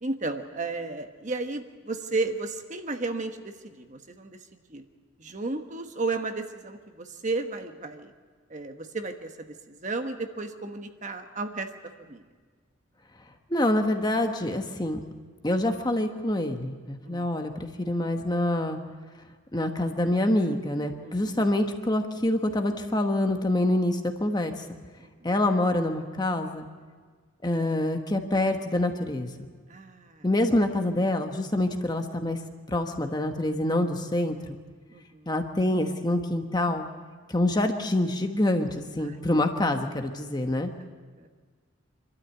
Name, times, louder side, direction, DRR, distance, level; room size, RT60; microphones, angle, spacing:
voice 1, 0.0-4.8 5.2-8.1 8.5-11.7 12.0-12.2 17.0-17.3 21.0-21.4 25.0-25.1 29.7-30.3 34.9-35.3 39.0-39.2 40.8-41.3, right 3 dB, 40° right, 6 dB, 1.2 m, -34 dB
voice 2, 13.5-15.0 15.4-18.8 19.5-24.6 25.2-26.7 27.4-29.5 30.2-32.4 32.7-34.6 35.3-36.9 37.3-38.7 38.9-40.7, left 1 dB, 20° left, 5 dB, 1.2 m, -26 dB
25.5 x 13.0 x 8.3 m, 1.5 s
head